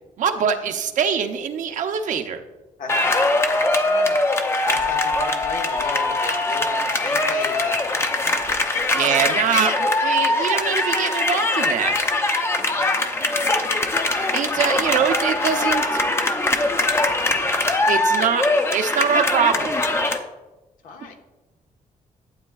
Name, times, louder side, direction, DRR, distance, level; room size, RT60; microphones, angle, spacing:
voice 1, 0.2-2.4 8.9-11.9 14.3-15.8 17.9-18.4 18.7-19.8, right 7 dB, 65° right, 6 dB, 0.8 m, -23 dB
voice 2, 2.8-8.8 9.2-9.3 12.6-13.1 13.4-13.7 14.5-14.6 20.8-21.2, left 4 dB, 70° left, 2 dB, 1.3 m, -38 dB
sound 1, 2.9-20.2, left 2 dB, 20° left, 0.7 m, -22 dB
11.5 x 8.6 x 2.4 m, 1.1 s
wide cardioid pair, 160°, 14 cm